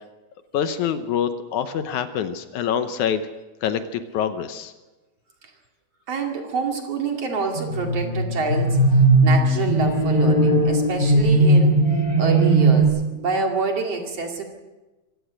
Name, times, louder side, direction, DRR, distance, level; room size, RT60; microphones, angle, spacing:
voice 1, 0.5-3.2 3.6-4.7, left 8 dB, 75° left, 10 dB, 2.2 m, -25 dB
voice 2, 6.1-11.8 12.2-14.4, right 4 dB, 50° right, 2 dB, 3.3 m, -27 dB
sound 1, 7.6-12.8, right 2 dB, 30° left, 3.4 m, -18 dB
24.0 x 17.0 x 6.4 m, 1.1 s
omnidirectional pair, 3.7 m